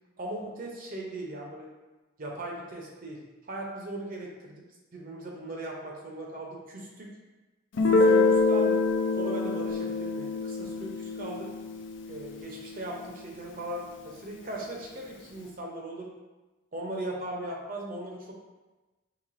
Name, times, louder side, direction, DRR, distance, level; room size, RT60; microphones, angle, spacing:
voice 1, 0.2-1.7 2.2-3.2 3.5-4.6 4.9-7.1 7.7-8.8 9.2-11.5 12.1-16.1 16.7-18.3, right 1 dB, 45° right, -1 dB, 0.6 m, -38 dB
Guitar, 7.8-13.3, left 3 dB, 60° left, 0.4 m, -26 dB
4.8 x 3.1 x 2.5 m, 1.2 s
head